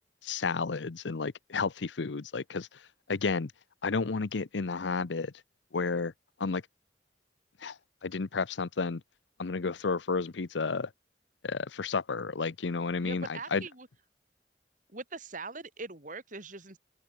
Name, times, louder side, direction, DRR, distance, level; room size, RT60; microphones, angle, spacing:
voice 1, 0.2-2.7 3.1-3.5 3.8-5.3 5.7-6.1 6.4-6.6 7.6-7.8 8.0-9.0 9.4-10.9 11.4-13.6, left 4 dB, 85° left, 0.7 m, -31 dB
voice 2, 13.0-13.9 14.9-16.8, right 3 dB, 45° right, 3.3 m, -42 dB
open air
head